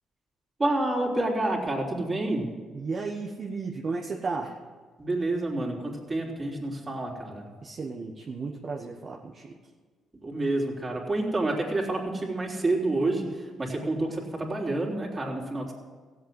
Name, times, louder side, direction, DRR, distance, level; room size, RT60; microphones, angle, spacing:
voice 1, 0.6-2.4 5.0-7.4 10.2-13.3 13.6-15.7, right 2 dB, 25° right, -1 dB, 3.4 m, -28 dB
voice 2, 2.7-4.6 7.6-9.6, right 4 dB, 45° right, 0 dB, 1.2 m, -34 dB
16.0 x 8.2 x 7.7 m, 1.5 s
cardioid pair, 90°, 0 cm